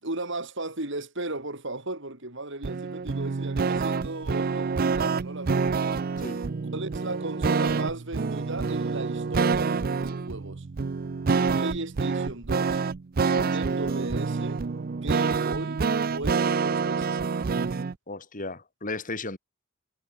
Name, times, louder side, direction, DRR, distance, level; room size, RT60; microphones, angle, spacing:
voice 1, 0.0-6.0 6.6-10.7 11.5-12.8 13.2-14.6 14.9-15.8 16.1-17.5, right 2 dB, 65° right, 5.2 m, -36 dB
sound 1, 2.6-17.9, right 4 dB, 45° right, 0.5 m, -27 dB
voice 2, 18.1-19.4, left 3 dB, 40° left, 4.6 m, -35 dB
head